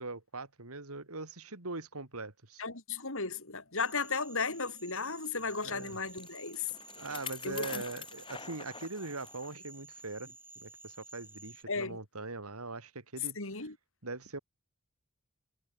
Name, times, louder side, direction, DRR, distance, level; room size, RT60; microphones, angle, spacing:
voice 1, 0.0-2.6 5.4-6.0 7.0-13.4 14.0-14.4, right 3 dB, 80° right, 3.4 m, -42 dB
voice 2, 2.6-6.7 7.4-7.8 11.7-12.0 13.4-13.7, left 4 dB, 65° left, 4.6 m, -35 dB
sound 1, 3.8-11.6, right 3 dB, 10° right, 3.3 m, -53 dB
Bicycle, 5.6-9.6 10.0-10.1 10.9-11.0, left 6 dB, 25° left, 7.0 m, -46 dB
head